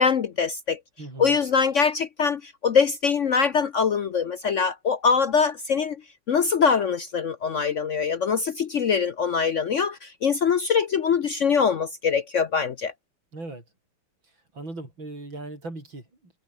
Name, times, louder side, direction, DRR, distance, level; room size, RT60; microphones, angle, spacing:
voice 1, 0.0-0.8 1.2-6.0 6.3-12.9, left 6 dB, 55° left, 0.8 m, -23 dB
voice 2, 1.0-1.4 13.3-13.6 14.5-16.3, right 2 dB, 90° right, 8.7 m, -38 dB
omnidirectional pair, 2.1 m